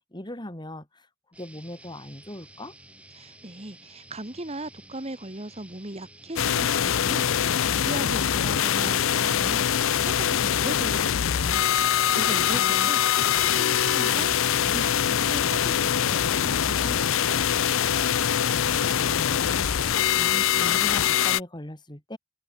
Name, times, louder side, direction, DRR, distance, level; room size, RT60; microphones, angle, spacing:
voice 1, 0.1-1.1 1.4-2.7 12.5-12.9 18.5-22.2, left 1 dB, 20° left, 2.4 m, -39 dB
sound 1, 1.3-18.9, right 1 dB, 5° right, 3.2 m, -51 dB
voice 2, 3.1-13.0 13.3-14.3 14.6-17.4, right 1 dB, 30° right, 1.7 m, -38 dB
sound 2, 6.4-21.4, left 9 dB, 65° left, 0.5 m, -23 dB
open air
head